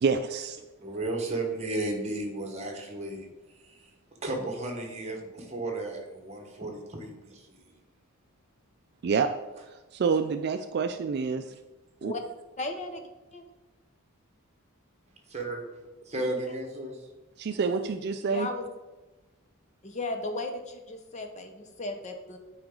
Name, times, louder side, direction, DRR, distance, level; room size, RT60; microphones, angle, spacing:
voice 1, 0.0-0.6 9.0-9.3 9.7-11.5 12.0-12.1 17.4-18.5, right 5 dB, 50° right, 8 dB, 0.3 m, -28 dB
voice 2, 0.8-3.9 4.2-7.8 15.3-15.6 16.0-17.0, right 2 dB, 30° right, 2 dB, 1.3 m, -34 dB
voice 3, 12.6-13.4 16.5-16.6 18.2-18.6 19.8-22.4, left 2 dB, 35° left, 6 dB, 0.7 m, -36 dB
8.9 x 4.9 x 3.8 m, 1.1 s
head